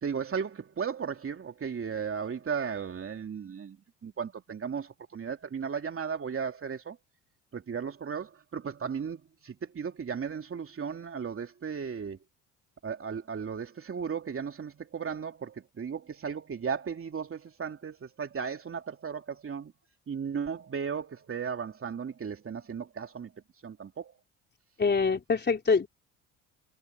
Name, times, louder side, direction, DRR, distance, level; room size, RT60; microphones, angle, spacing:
voice 1, 0.0-3.8 4.0-7.0 7.5-12.2 12.8-19.7 20.1-23.3 23.6-24.1, right 6 dB, 35° right, 3.0 m, -35 dB
voice 2, 24.8-25.9, left 4 dB, 25° left, 4.2 m, -25 dB
hypercardioid pair, 60°, 37 cm